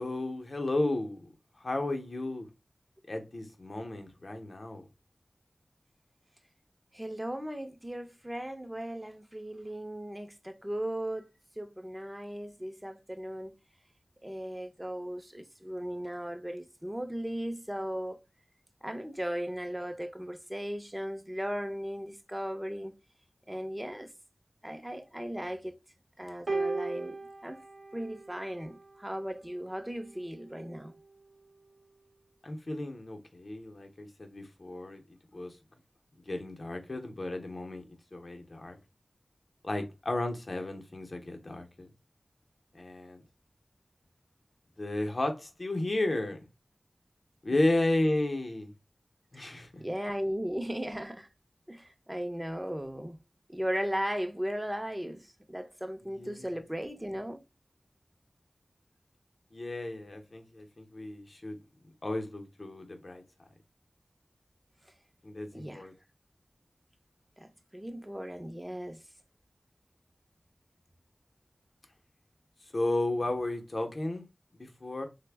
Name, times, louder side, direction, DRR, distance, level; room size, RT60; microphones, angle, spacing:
voice 1, 0.0-2.5 3.1-4.9 32.4-35.0 35.3-35.6 36.1-37.8 38.1-38.8 39.6-41.9 42.7-43.2 44.8-46.5 47.4-48.7 49.3-49.8 56.1-56.5 59.5-61.6 62.0-63.2 65.2-65.9 72.7-74.2 74.5-75.1, left 2 dB, 60° left, 0.7 m, -33 dB
voice 2, 6.9-11.3 11.6-13.5 14.2-18.2 18.8-22.9 23.5-24.1 24.6-25.8 26.2-27.2 27.4-27.6 27.9-30.9 49.3-51.3 51.7-53.2 53.5-57.4 65.5-65.9 67.4-69.0, equal, 15° right, 0.5 m, -37 dB
sound 1, 26.5-28.9 30.0-30.1, right 3 dB, 65° right, 0.7 m, -36 dB
3.3 x 2.1 x 3.3 m
wide cardioid pair, 50°, 0 cm